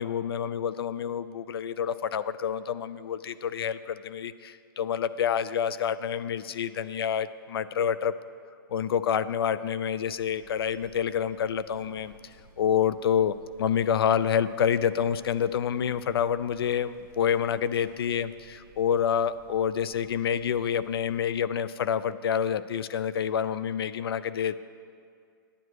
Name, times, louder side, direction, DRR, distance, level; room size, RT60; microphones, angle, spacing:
voice 1, 0.0-8.1 8.7-12.1 12.6-24.6, left 8 dB, 80° left, 15 dB, 0.4 m, -28 dB
sound 1, 10.1-21.3, right 3 dB, 35° right, 1.0 m, -56 dB
9.8 x 8.6 x 4.7 m, 2.3 s
hypercardioid pair, 175°, 13 cm